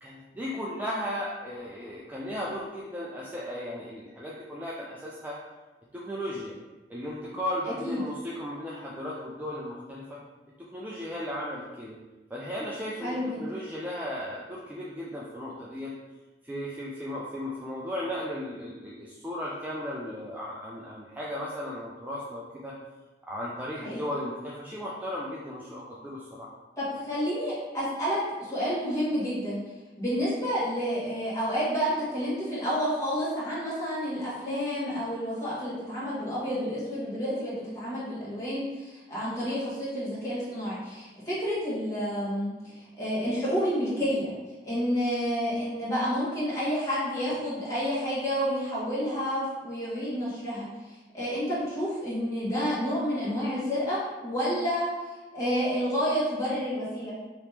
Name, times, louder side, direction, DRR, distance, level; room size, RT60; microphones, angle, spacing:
voice 1, 0.0-5.4 5.9-6.5 6.9-10.2 10.6-12.0 12.3-15.9 16.4-22.8 23.3-26.5, left 1 dB, 10° right, -6 dB, 0.3 m, -36 dB
voice 2, 13.0-13.4 23.8-24.0 26.8-28.2 28.5-29.6 30.0-44.3 44.6-50.7 51.1-54.9 55.3-57.1, equal, 20° left, -10 dB, 1.4 m, -29 dB
3.0 x 2.9 x 3.3 m, 1.1 s
head